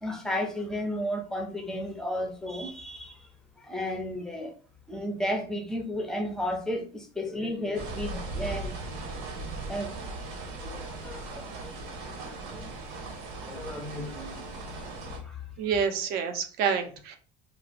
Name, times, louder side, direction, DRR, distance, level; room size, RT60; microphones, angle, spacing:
voice 1, 0.0-3.3 3.6-4.5 4.9-9.2 9.7-10.0 10.6-11.8 12.2-12.8 13.4-14.9 15.2-15.5, left 1 dB, 5° left, 0.5 m, -34 dB
sound 1, 7.7-15.2, right 2 dB, 70° right, 0.9 m, -38 dB
voice 2, 15.6-17.2, right 6 dB, 55° right, 0.6 m, -28 dB
2.8 x 2.4 x 3.3 m
cardioid pair, 165°, 19 cm